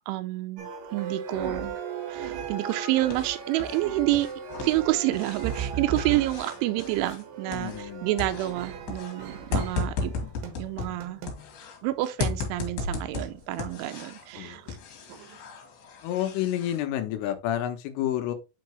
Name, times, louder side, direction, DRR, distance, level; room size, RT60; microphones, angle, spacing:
voice 1, 0.1-1.8 2.1-4.3 4.6-10.1 10.6-11.2 11.8-14.6, right 16 dB, 85° right, 3.1 m, -28 dB
sound 1, 0.6-11.5 12.0-12.1 12.8-12.9 13.2-13.3 13.6-14.0 14.3-14.8 15.1-15.4, right 6 dB, 65° right, 2.3 m, -37 dB
sound 2, 2.7-3.8 4.1-11.8 12.2-14.3 14.7-16.8, left 4 dB, 60° left, 3.4 m, -35 dB
voice 2, 7.5-8.1 14.4-14.6 16.0-18.4, left 12 dB, 85° left, 3.4 m, -29 dB
8.8 x 4.7 x 3.1 m
omnidirectional pair, 5.7 m